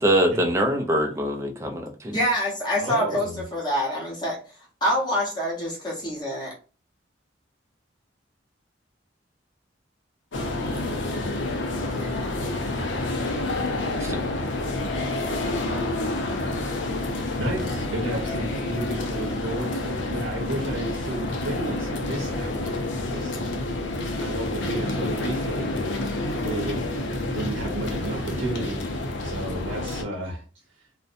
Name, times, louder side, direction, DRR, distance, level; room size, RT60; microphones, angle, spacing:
voice 1, 0.0-2.2 14.0-14.2, right 1 dB, 15° right, 3 dB, 0.3 m, -23 dB
voice 2, 2.1-4.4 4.8-6.5, equal, 20° left, -4 dB, 0.8 m, -26 dB
voice 3, 2.8-3.4 17.4-23.6 24.1-25.8 26.3-26.9 27.3-30.4, right 1 dB, 80° right, -2 dB, 0.7 m, -32 dB
sound 1, 10.3-30.0, left 2 dB, 75° left, 0.5 m, -28 dB
2.6 x 2.1 x 2.5 m, 0.36 s
head